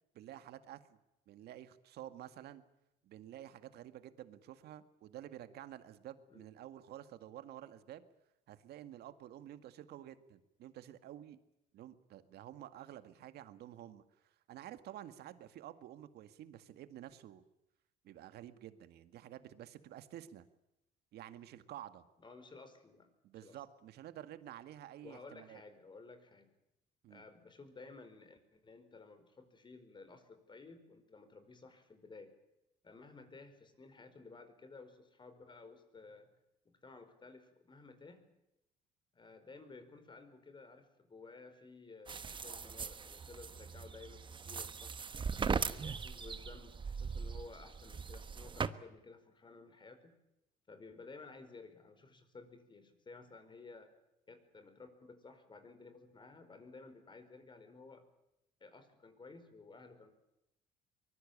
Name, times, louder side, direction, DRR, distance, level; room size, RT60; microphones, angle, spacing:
voice 1, 0.1-1.0 1.3-2.6 3.0-8.0 8.5-11.4 11.7-17.4 18.0-20.5 21.1-22.0 23.2-25.6 27.0-27.2, right 12 dB, 70° right, 11 dB, 2.0 m, -51 dB
voice 2, 22.2-23.1 23.4-23.6 25.0-26.5 27.1-32.3 32.8-36.3 36.6-38.3 39.1-45.0 45.5-50.1 50.7-53.9 54.3-58.1 58.6-60.1, left 3 dB, 30° left, 9 dB, 4.9 m, -55 dB
sound 1, 42.1-48.7, right 5 dB, 30° right, 1.2 m, -40 dB
23.5 x 21.0 x 8.7 m, 0.89 s
cardioid pair, 110°, 17 cm